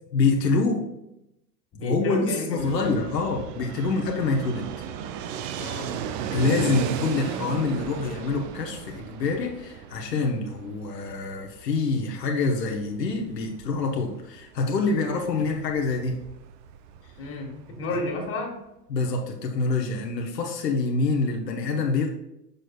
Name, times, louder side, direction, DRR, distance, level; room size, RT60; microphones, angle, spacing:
voice 1, 0.1-0.9 1.8-4.7 6.3-16.2 17.9-18.0 18.9-22.1, left 3 dB, 85° left, 2 dB, 1.0 m, -26 dB
voice 2, 1.7-3.0 5.5-6.0 17.2-18.6, left 2 dB, 25° left, 1 dB, 1.7 m, -32 dB
Fixed-wing aircraft airplane, 2.6-18.3, right 8 dB, 40° right, 0.5 m, -36 dB
6.5 x 6.3 x 2.3 m, 0.86 s
hypercardioid pair, 95°, 48 cm